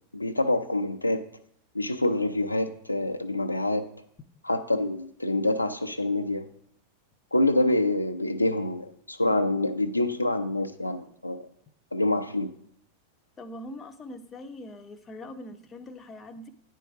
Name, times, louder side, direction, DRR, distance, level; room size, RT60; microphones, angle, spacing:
voice 1, 0.1-1.2 1.7-3.8 4.4-6.4 7.3-11.4 11.9-12.5, left 1 dB, 85° left, 6 dB, 0.6 m, -26 dB
voice 2, 13.4-16.5, left 1 dB, 20° left, 8 dB, 0.7 m, -42 dB
9.7 x 4.6 x 4.8 m, 0.68 s
figure-of-eight pair, 90°, 0 cm